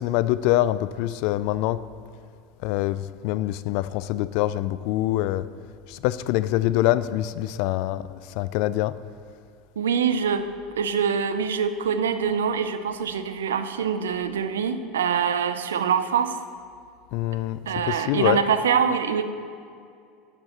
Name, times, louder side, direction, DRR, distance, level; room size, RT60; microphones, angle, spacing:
voice 1, 0.0-1.8 2.6-5.5 5.9-8.9 17.1-17.6 17.9-18.4, left 15 dB, 65° left, 16 dB, 0.3 m, -25 dB
voice 2, 9.8-10.5 10.8-16.4 17.7-19.2, right 7 dB, 90° right, 10 dB, 0.5 m, -24 dB
11.5 x 8.6 x 3.0 m, 2.3 s
hypercardioid pair, 95°, 0 cm